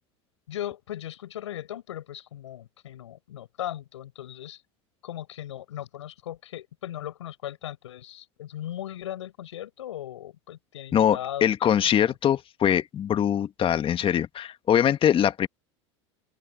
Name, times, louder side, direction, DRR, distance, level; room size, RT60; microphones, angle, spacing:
voice 1, 0.5-4.6 5.0-11.7 12.1-12.2, left 12 dB, 85° left, 6.8 m, -38 dB
voice 2, 10.9-15.5, left 9 dB, 35° left, 1.6 m, -23 dB
open air
hypercardioid pair, 85°, 15 cm